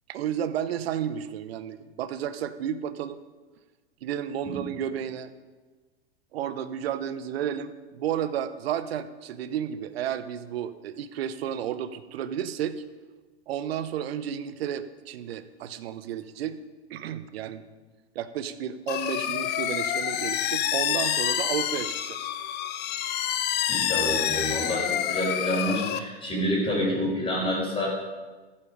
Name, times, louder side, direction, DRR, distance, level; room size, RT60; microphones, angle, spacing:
voice 1, 0.1-3.2 4.0-5.3 6.3-12.8 13.5-16.6 16.9-17.6 18.1-22.3, right 9 dB, 65° right, 12 dB, 1.0 m, -32 dB
sound 1, 18.9-26.0, left 10 dB, 30° left, 0.9 m, -28 dB
voice 2, 23.7-27.9, equal, 15° left, -4 dB, 4.9 m, -28 dB
14.0 x 8.8 x 5.2 m, 1.3 s
hypercardioid pair, 115°, 32 cm